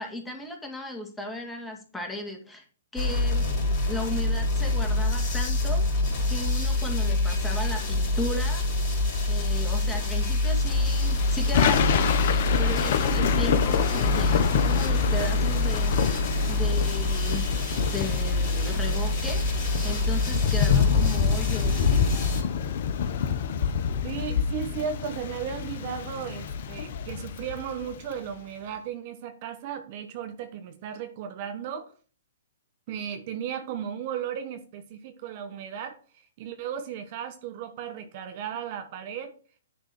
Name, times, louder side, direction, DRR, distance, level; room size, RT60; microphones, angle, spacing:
voice 1, 0.0-2.6 2.9-6.0 6.3-8.7 9.3-16.2 16.5-21.9, left 1 dB, 5° left, 2.0 m, -36 dB
sound 1, 3.0-22.4, left 2 dB, 30° left, 3.5 m, -26 dB
Thunder / Rain, 10.7-28.2, left 8 dB, 55° left, 0.7 m, -28 dB
voice 2, 24.0-31.9 32.9-36.0 36.4-39.4, right 8 dB, 45° right, 1.0 m, -35 dB
10.0 x 3.6 x 6.0 m
hypercardioid pair, 125°, 0 cm